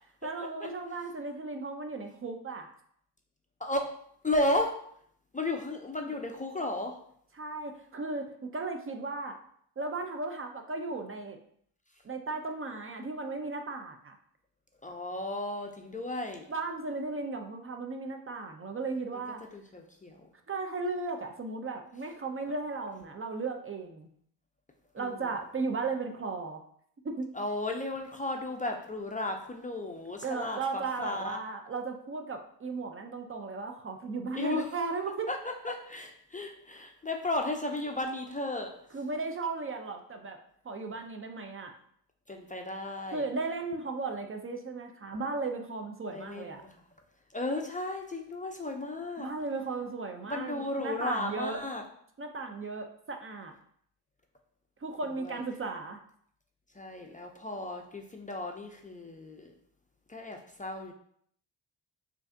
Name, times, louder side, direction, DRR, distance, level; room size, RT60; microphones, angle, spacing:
voice 1, 0.2-2.7 6.0-6.1 7.3-9.4 9.8-11.4 12.0-14.2 16.5-19.4 20.5-24.1 24.9-26.6 27.0-27.3 30.2-35.3 38.9-40.4 40.6-41.7 43.1-46.6 49.2-51.6 52.2-53.5 54.8-56.0, right 3 dB, 30° right, 4 dB, 0.5 m, -36 dB
voice 2, 3.6-3.9 4.2-4.7 5.3-7.0 14.8-16.4 19.5-20.2 25.0-25.2 27.3-31.4 34.4-34.6 35.3-38.7 42.3-43.2 46.1-46.7 47.3-49.3 50.2-51.8 55.2-55.4 56.8-59.5 60.1-60.9, left 2 dB, 20° left, 2 dB, 0.4 m, -34 dB
4.6 x 2.6 x 2.6 m, 0.65 s
cardioid pair, 60°, 42 cm